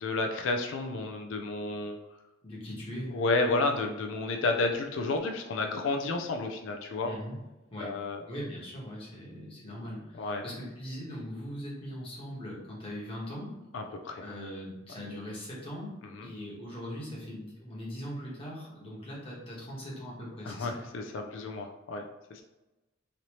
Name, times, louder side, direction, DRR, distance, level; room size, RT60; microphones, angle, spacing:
voice 1, 0.0-2.0 3.1-7.1 7.8-8.2 10.2-10.4 13.7-14.3 14.9-15.0 16.2-16.3 20.4-22.0 22.3-22.4, left 3 dB, 75° left, 4 dB, 0.4 m, -31 dB
voice 2, 2.4-3.1 7.0-7.4 7.7-7.9 8.3-13.5 14.2-15.9 16.2-20.8, equal, 30° left, -5 dB, 1.1 m, -40 dB
3.2 x 2.7 x 2.9 m, 1.0 s
head